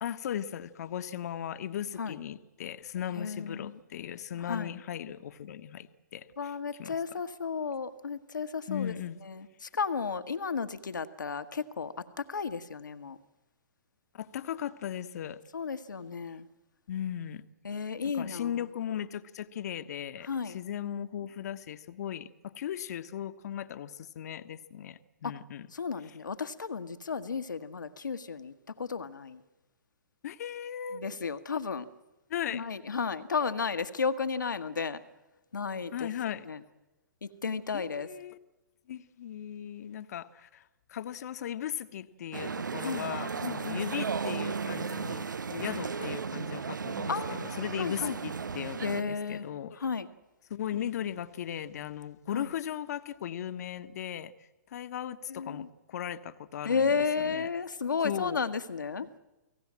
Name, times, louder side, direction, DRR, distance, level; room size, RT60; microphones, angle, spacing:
voice 1, 0.0-5.9 6.1-7.0 8.7-9.2 14.1-15.4 16.9-17.4 18.1-25.7 30.2-31.0 32.3-32.6 35.9-36.5 37.7-38.4 38.9-40.6 40.9-45.3 45.6-49.8 50.5-54.3 54.7-57.5 58.0-58.4 59.0-59.1, left 10 dB, 60° left, 11 dB, 1.3 m, -37 dB
voice 2, 3.1-3.8 4.4-4.8 6.4-8.9 9.2-13.2 15.5-16.5 17.6-18.6 20.2-20.6 25.2-25.3 25.7-29.4 30.9-31.9 32.5-35.0 35.5-36.1 36.5-36.6 37.2-38.1 42.8-43.1 43.4-43.9 45.5-46.1 47.1-48.2 48.8-49.5 49.8-50.1 52.3-52.5 55.3-55.7 56.6-59.1, left 5 dB, 80° left, 10 dB, 1.5 m, -33 dB
sound 1, 42.3-49.0, right 5 dB, 85° right, 0.7 m, -35 dB
29.5 x 18.5 x 7.5 m, 1.1 s
hypercardioid pair, 120°, 10 cm